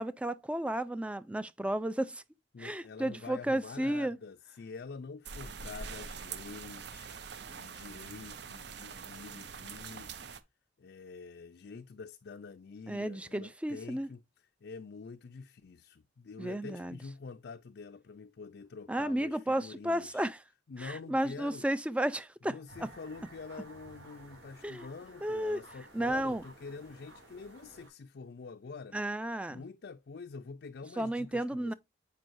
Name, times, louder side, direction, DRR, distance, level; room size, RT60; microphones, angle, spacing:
voice 1, 0.0-2.2 2.6-4.2 12.9-14.1 16.4-17.0 18.9-20.4 20.8-22.9 24.6-24.9 25.2-25.6 25.9-26.4 28.9-29.6 31.0-31.7, right 1 dB, 5° right, 0.4 m, -33 dB
voice 2, 2.5-7.1 7.5-10.1 10.8-14.2 14.6-20.2 20.7-21.7 22.5-29.0 29.5-31.7, left 4 dB, 55° left, 0.4 m, -46 dB
sound 1, 5.2-10.4, right 6 dB, 60° right, 0.6 m, -44 dB
sound 2, 22.7-27.9, right 1 dB, 85° right, 3.8 m, -54 dB
7.7 x 5.3 x 2.6 m
head